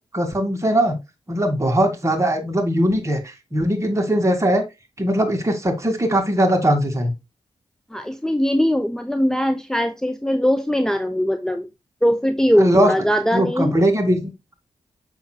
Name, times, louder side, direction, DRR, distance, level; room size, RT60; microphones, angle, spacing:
voice 1, 0.1-1.0 1.3-4.6 5.0-7.1 12.6-12.9 13.3-14.3, equal, 25° right, 2.4 m, -20 dB
voice 2, 7.9-11.7 12.0-13.7, equal, 5° left, 0.9 m, -20 dB
7.0 x 6.2 x 2.4 m
cardioid pair, 55°, 11 cm